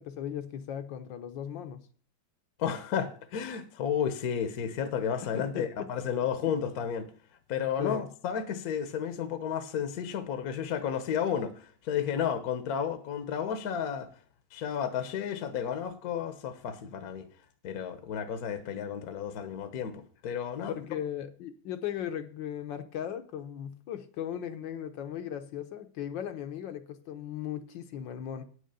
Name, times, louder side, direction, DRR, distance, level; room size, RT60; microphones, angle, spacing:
voice 1, 0.0-1.8 5.3-5.7 7.8-8.1 20.7-28.4, left 9 dB, 75° left, 1.5 m, -37 dB
voice 2, 2.6-7.1 7.5-14.1 14.5-17.3 17.6-21.0, left 8 dB, 60° left, 1.2 m, -32 dB
8.5 x 6.5 x 6.8 m
omnidirectional pair, 2.1 m